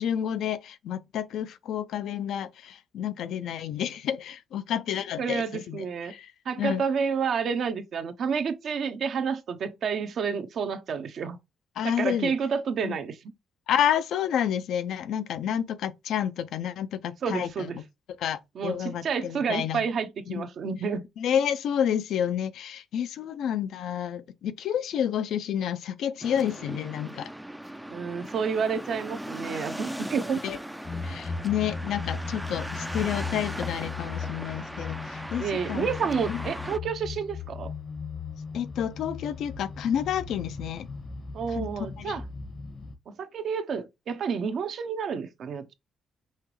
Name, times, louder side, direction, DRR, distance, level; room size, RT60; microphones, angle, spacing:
voice 1, 0.0-6.3 6.6-6.8 11.8-12.3 12.8-13.0 13.7-17.7 18.2-19.9 20.3-20.5 21.2-27.3 30.4-30.6 31.0-35.9 36.3-36.4 38.5-40.9 41.5-41.7 42.0-42.2, left 9 dB, 75° left, 0.5 m, -30 dB
voice 2, 5.2-6.1 6.5-11.4 11.8-13.2 17.2-17.8 18.5-21.0 27.9-30.4 35.4-37.7 41.3-42.2 43.1-45.7, right 6 dB, 60° right, 0.7 m, -30 dB
sound 1, 26.2-36.8, right 1 dB, 5° right, 0.4 m, -38 dB
sound 2, 30.8-42.9, left 5 dB, 45° left, 0.8 m, -37 dB
5.6 x 2.9 x 3.1 m
cardioid pair, 90°, 0 cm